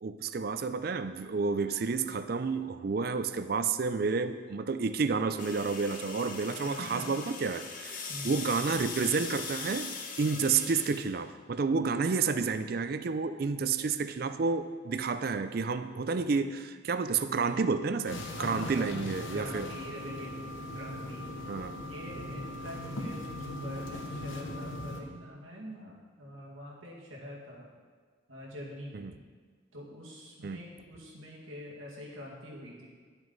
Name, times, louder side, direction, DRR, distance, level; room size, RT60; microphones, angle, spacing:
voice 1, 0.0-9.9 10.2-19.7 21.5-21.8 28.9-29.1 30.4-30.6, right 4 dB, 50° right, 11 dB, 0.4 m, -30 dB
sound 1, 5.4-11.1, left 5 dB, 40° left, 0.9 m, -40 dB
voice 2, 6.6-7.1 8.1-8.4 18.4-18.9 19.3-21.3 21.9-27.7 28.3-29.1 29.7-32.9, equal, 90° right, -3 dB, 2.1 m, -45 dB
sound 2, 18.1-25.0, left 1 dB, 75° left, 1.0 m, -39 dB
11.0 x 7.9 x 4.0 m, 1.5 s
head